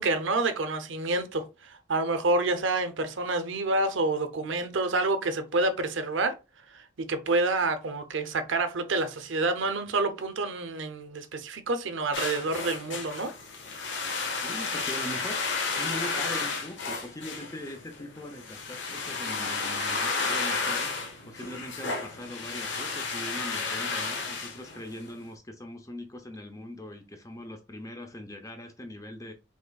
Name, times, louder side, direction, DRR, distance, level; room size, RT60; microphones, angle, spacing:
voice 1, 0.0-6.4 6.7-13.3, right 2 dB, 70° right, 0.7 m, -28 dB
sound 1, 12.1-25.1, left 4 dB, 65° left, 1.0 m, -32 dB
voice 2, 14.4-20.9 21.3-29.3, left 1 dB, 15° left, 0.6 m, -41 dB
5.3 x 3.6 x 2.3 m
head